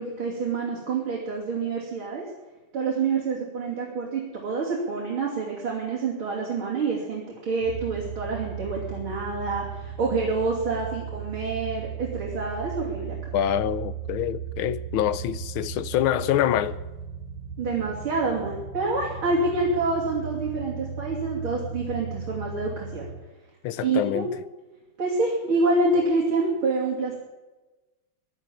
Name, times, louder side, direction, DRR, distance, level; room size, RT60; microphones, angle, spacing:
voice 1, 0.0-2.3 2.7-13.2 17.6-23.1 23.8-24.3 25.0-27.1, right 3 dB, 80° right, 3.8 m, -27 dB
sound 1, 7.6-23.2, right 7 dB, 65° right, 2.6 m, -36 dB
voice 2, 13.3-16.8 23.6-24.3, left 11 dB, 80° left, 1.6 m, -25 dB
16.5 x 11.0 x 7.3 m
omnidirectional pair, 2.2 m